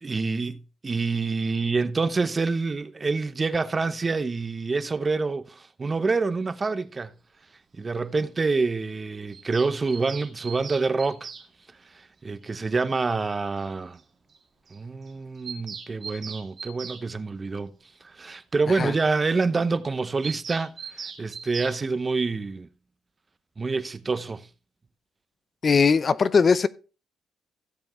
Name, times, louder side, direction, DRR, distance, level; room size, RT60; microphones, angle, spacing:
voice 1, 0.0-7.1 7.8-11.3 11.9-14.0 14.7-17.7 18.0-22.7 23.6-24.5, right 4 dB, 30° right, 0.7 m, -27 dB
Bird vocalization bird call bird song, 9.3-11.5 12.9-13.0 13.2-13.3 13.6-13.7 14.0-14.1 14.3-14.4 14.7-14.8 15.1-17.0 20.2-21.8, right 6 dB, 50° right, 1.9 m, -39 dB
voice 2, 25.6-26.7, left 5 dB, 40° left, 0.6 m, -20 dB
16.0 x 7.0 x 3.1 m
cardioid pair, 90°, 0 cm